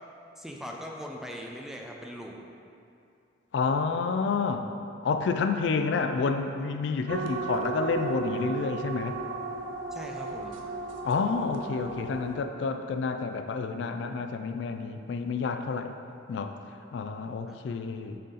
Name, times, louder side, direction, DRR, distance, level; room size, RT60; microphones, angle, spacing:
voice 1, 0.4-2.4 9.9-10.6 17.5-17.6, equal, ahead, 0 dB, 0.4 m, -40 dB
voice 2, 3.5-4.7 5.0-9.2 11.0-15.9 16.3-16.5 16.9-18.2, left 4 dB, 65° left, 7 dB, 0.3 m, -29 dB
sound 1, 7.1-12.4, right 5 dB, 80° right, 0.5 m, -35 dB
6.4 x 4.0 x 4.0 m, 2.6 s
head